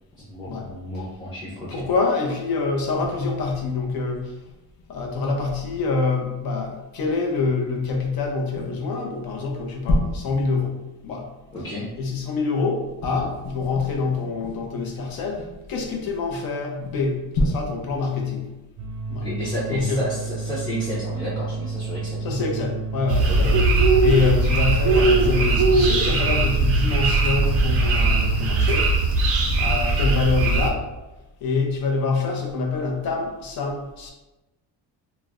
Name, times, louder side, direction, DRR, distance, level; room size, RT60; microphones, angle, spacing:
voice 1, 0.2-1.8 11.5-11.9 19.2-22.2 23.3-23.6 30.0-30.2, equal, 10° left, -10 dB, 0.5 m, -31 dB
voice 2, 1.7-4.4 4.9-11.3 12.0-18.5 19.1-19.3 19.7-20.0 22.2-28.9 29.6-30.9 31.4-34.1, left 4 dB, 60° left, 1 dB, 0.7 m, -25 dB
sound 1, 18.8-28.7, right 4 dB, 80° right, 0.6 m, -31 dB
sound 2, 23.1-30.7, right 2 dB, 40° right, 0.4 m, -19 dB
2.4 x 2.1 x 3.4 m, 1.0 s
cardioid pair, 145°, 41 cm